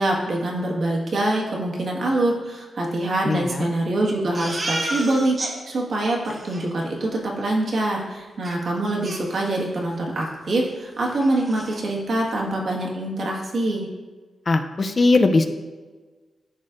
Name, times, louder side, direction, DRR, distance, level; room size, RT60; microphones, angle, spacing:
voice 1, 0.0-13.9, right 1 dB, 60° right, -2 dB, 1.5 m, -24 dB
voice 2, 3.3-3.7 14.5-15.5, left 3 dB, 35° left, 8 dB, 0.4 m, -19 dB
Crying sobbing, 4.3-5.5 5.9-6.0 6.2-6.6 8.4-8.5 9.0-9.8 10.2-10.3 10.7-10.8 11.1-11.8, right 1 dB, 35° right, 1.2 m, -31 dB
12.5 x 4.2 x 2.5 m, 1.3 s
wide cardioid pair, 125°, 0 cm